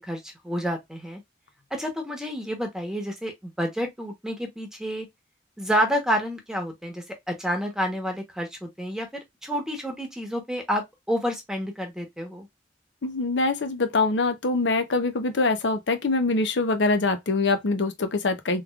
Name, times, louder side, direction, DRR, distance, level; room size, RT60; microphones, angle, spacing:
voice 1, 0.1-1.2 1.7-5.1 5.6-12.5, equal, 5° right, 1.0 m, -29 dB
voice 2, 13.0-18.6, left 3 dB, 90° left, 0.7 m, -24 dB
3.5 x 3.2 x 2.4 m
head